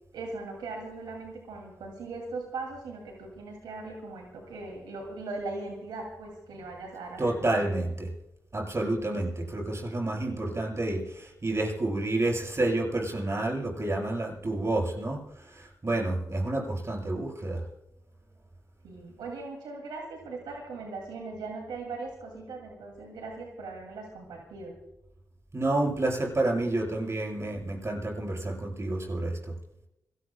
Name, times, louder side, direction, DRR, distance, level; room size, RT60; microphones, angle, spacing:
voice 1, 0.1-7.7 9.3-9.5 16.5-16.7 18.8-24.7, right 3 dB, 85° right, 1 dB, 2.4 m, -39 dB
voice 2, 7.2-8.1 8.5-17.6 25.5-29.3, right 2 dB, 40° right, -1 dB, 7.5 m, -29 dB
26.0 x 19.0 x 2.2 m, 0.87 s
supercardioid pair, 40°, 8 cm